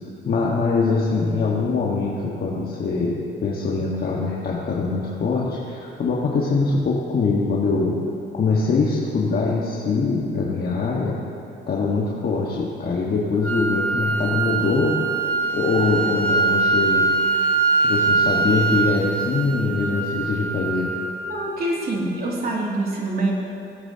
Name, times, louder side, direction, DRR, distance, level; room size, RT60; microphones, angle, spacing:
voice 1, 0.2-8.0 8.3-11.2 11.7-15.1 15.5-17.1 17.8-20.9, left 4 dB, 50° left, -4 dB, 1.5 m, -23 dB
sound 1, 13.4-21.4, right 4 dB, 5° left, 1.0 m, -23 dB
voice 2, 21.2-23.3, right 2 dB, 50° right, -3 dB, 2.7 m, -25 dB
19.5 x 9.0 x 2.9 m, 2.8 s
cardioid pair, 90°, 20 cm